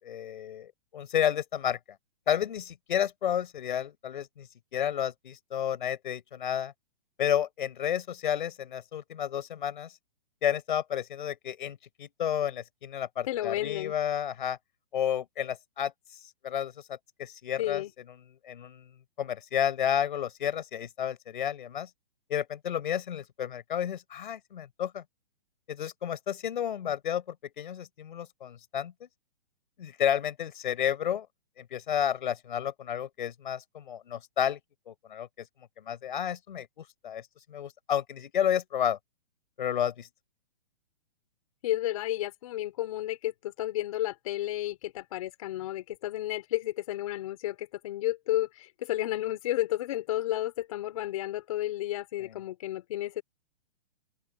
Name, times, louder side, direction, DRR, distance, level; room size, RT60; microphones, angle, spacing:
voice 1, 0.0-1.8 2.3-4.5 4.7-6.7 7.2-9.9 10.4-14.6 14.9-15.9 16.4-17.8 18.4-18.9 19.2-21.9 22.3-25.0 25.7-29.1 29.8-31.3 31.6-34.6 34.9-35.4 35.8-36.7 37.0-37.2 37.5-39.0 39.6-40.1, left 9 dB, 55° left, 5.2 m, -31 dB
voice 2, 13.3-13.9 17.6-17.9 41.6-53.2, left 14 dB, 35° left, 4.0 m, -32 dB
open air
hypercardioid pair, 170°, 30 cm